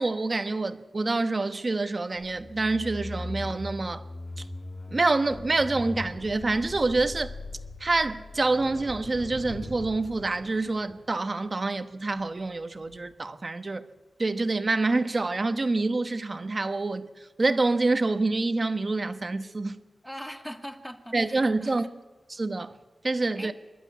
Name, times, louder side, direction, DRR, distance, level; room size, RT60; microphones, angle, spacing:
voice 1, 0.0-4.1 4.9-7.3 7.8-13.9 14.2-17.1 17.4-19.8 21.1-21.8 22.3-22.8 23.0-23.5, right 3 dB, 35° right, 1.1 m, -27 dB
sound 1, 2.2-12.5 12.8-13.1, left 2 dB, 35° left, 2.4 m, -40 dB
voice 2, 20.0-21.9 23.4-23.5, equal, ahead, 2.0 m, -41 dB
27.0 x 12.0 x 9.4 m
wide cardioid pair, 95°, 0 cm